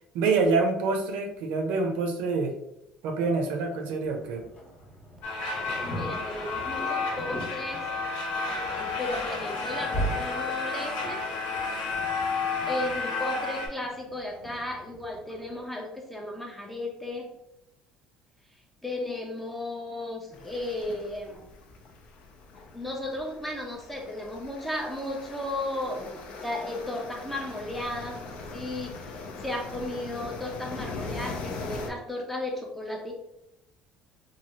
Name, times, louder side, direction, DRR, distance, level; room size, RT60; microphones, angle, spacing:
voice 1, 0.1-2.5 3.0-4.4, right 4 dB, 80° right, 3 dB, 0.6 m, -26 dB
sound 1, 4.0-15.6, right 1 dB, 35° left, 0.9 m, -40 dB
sound 2, 5.2-13.7, left 4 dB, 80° left, 0.8 m, -31 dB
voice 2, 5.8-7.9 8.8-11.3 12.7-17.3 18.8-21.5 22.7-33.1, left 1 dB, 5° left, 1 dB, 0.5 m, -35 dB
sound 3, 20.3-31.9, left 3 dB, 60° left, 0.5 m, -41 dB
3.1 x 2.3 x 2.9 m, 0.83 s
cardioid pair, 150°, 3 cm